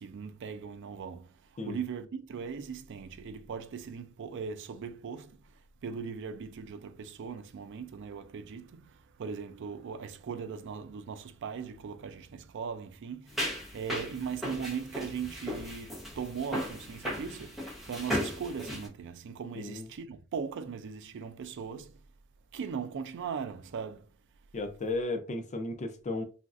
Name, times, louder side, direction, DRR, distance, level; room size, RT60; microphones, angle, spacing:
voice 1, 0.0-22.0 22.5-24.1, right 6 dB, 55° right, 0.4 m, -39 dB
sound 1, 13.3-18.9, equal, ahead, 0.9 m, -36 dB
voice 2, 19.6-19.9 24.5-26.2, left 2 dB, 35° left, 0.5 m, -34 dB
3.0 x 2.5 x 2.4 m
head